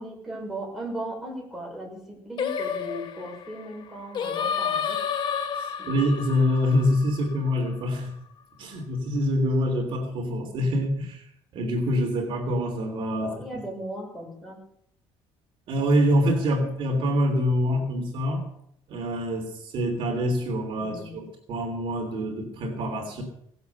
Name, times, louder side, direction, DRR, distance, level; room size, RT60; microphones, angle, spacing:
voice 1, 0.0-5.0 5.8-6.0 13.1-14.6 20.7-21.2, right 1 dB, ahead, -2 dB, 5.8 m, -37 dB
Singing, 2.4-7.7, left 7 dB, 45° left, 1.3 m, -30 dB
voice 2, 5.5-8.1 8.6-11.3 11.5-13.3 15.7-18.4 18.9-23.2, equal, 55° right, 2 dB, 3.2 m, -25 dB
18.5 x 8.2 x 6.9 m, 0.69 s
cardioid pair, 135°, 11 cm